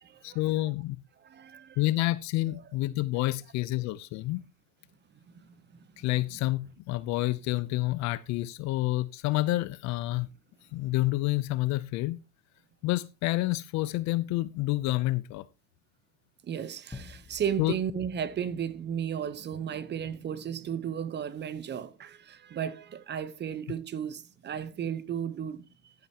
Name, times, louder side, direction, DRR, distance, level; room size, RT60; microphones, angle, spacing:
voice 1, 0.2-1.0 1.8-4.4 6.0-10.3 10.7-12.2 12.8-15.5 17.6-17.7, left 18 dB, 45° left, 0.6 m, -28 dB
voice 2, 1.2-1.8 5.4-5.5 16.4-25.9, right 8 dB, 25° right, 0.9 m, -34 dB
sound 1, 16.9-19.7, left 4 dB, 10° left, 1.1 m, -50 dB
14.5 x 8.0 x 2.9 m
supercardioid pair, 115°, 41 cm